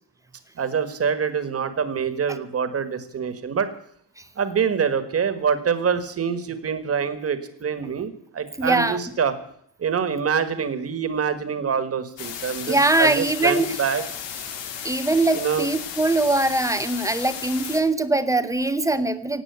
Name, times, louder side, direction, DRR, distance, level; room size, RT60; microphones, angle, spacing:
voice 1, 0.6-3.7 4.3-9.3 9.8-14.0 15.3-15.7, right 6 dB, 35° right, 11 dB, 1.7 m, -25 dB
voice 2, 8.6-9.0 12.7-13.8 14.8-19.4, right 2 dB, 5° right, 11 dB, 0.8 m, -22 dB
sound 1, 12.2-17.8, left 8 dB, 80° left, 2.6 m, -34 dB
17.5 x 8.8 x 8.2 m, 0.66 s
cardioid pair, 175°, 43 cm